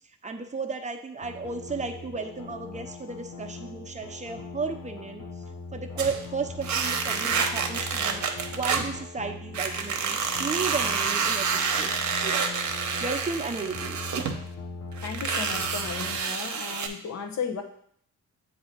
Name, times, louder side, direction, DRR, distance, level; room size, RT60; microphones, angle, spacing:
voice 1, 0.2-5.2 5.7-8.2 8.5-12.4 13.0-14.0, right 4 dB, 25° right, 4 dB, 0.7 m, -34 dB
sound 1, 1.2-16.2, left 3 dB, 85° left, 1.1 m, -41 dB
sound 2, 6.0-6.2 6.6-8.9 9.5-14.4 14.9-16.9, right 6 dB, 70° right, 0.8 m, -28 dB
voice 2, 15.0-17.6, left 6 dB, 65° left, 4 dB, 0.9 m, -34 dB
8.2 x 2.8 x 4.4 m, 0.64 s
cardioid pair, 95°, 30 cm